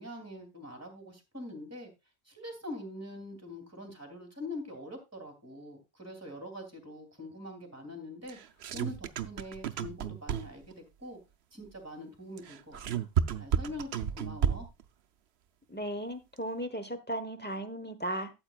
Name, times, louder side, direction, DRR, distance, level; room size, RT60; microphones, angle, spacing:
voice 1, 0.0-1.9 2.3-8.4 8.7-11.2 11.5-13.1 13.3-14.7, left 1 dB, 15° right, 4 dB, 2.8 m, -44 dB
sound 1, 8.3-10.7 12.4-14.8, right 8 dB, 80° right, 0.9 m, -32 dB
voice 2, 15.7-18.3, right 1 dB, 10° left, 8 dB, 1.1 m, -36 dB
13.5 x 7.9 x 2.4 m, 0.24 s
omnidirectional pair, 1.0 m